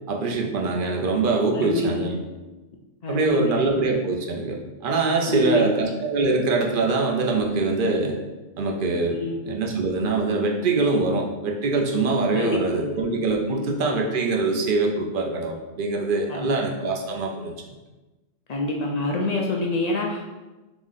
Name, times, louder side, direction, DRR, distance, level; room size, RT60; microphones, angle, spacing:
voice 1, 0.1-2.1 3.1-8.1 8.6-9.2 9.5-17.5, right 3 dB, 55° right, 1 dB, 0.7 m, -23 dB
voice 2, 1.5-2.0 3.0-3.7 5.3-5.8 6.2-6.4 9.1-9.3 12.3-13.0 13.5-13.7 16.3-16.6 18.5-20.3, left 2 dB, 65° left, -1 dB, 0.4 m, -27 dB
3.6 x 3.0 x 3.9 m, 1.1 s
omnidirectional pair, 1.3 m